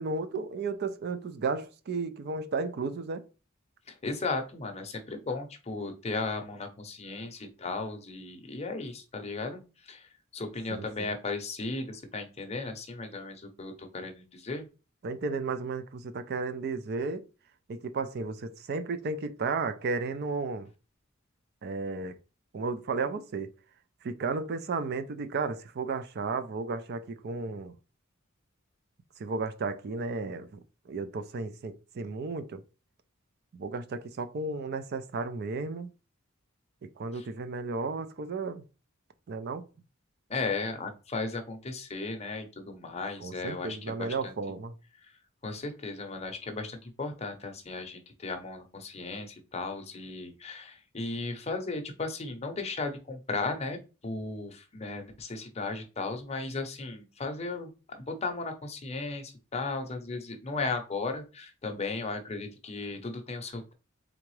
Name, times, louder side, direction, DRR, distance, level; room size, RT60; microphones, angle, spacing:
voice 1, 0.0-3.2 10.7-11.1 15.0-17.2 17.7-20.7 21.6-22.1 22.5-23.5 24.0-27.7 29.2-30.6 30.9-32.6 33.5-35.9 36.8-38.6 39.3-39.7 43.2-44.7, right 4 dB, 50° right, 0.4 m, -33 dB
voice 2, 3.9-14.6 37.1-37.2 40.3-44.3 45.4-53.8 54.0-63.7, left 3 dB, 30° left, 0.7 m, -36 dB
3.8 x 3.5 x 3.1 m
head